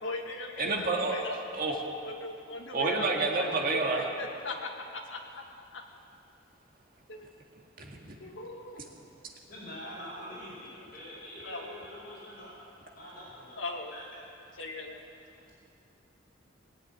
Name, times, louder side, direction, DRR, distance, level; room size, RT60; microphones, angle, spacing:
voice 1, 0.0-1.4 2.0-5.2 5.7-5.8 7.1-7.3 8.2-8.8 11.4-11.8 13.6-13.9 14.6-15.0, left 2 dB, 70° left, 1 dB, 1.9 m, -39 dB
voice 2, 0.6-1.8 2.7-4.1 7.8-8.2, right 3 dB, 45° right, 0 dB, 1.9 m, -29 dB
voice 3, 9.5-12.5 12.9-13.6 13.9-14.0, equal, 50° left, -6 dB, 5.3 m, -44 dB
19.5 x 8.0 x 9.4 m, 2.6 s
head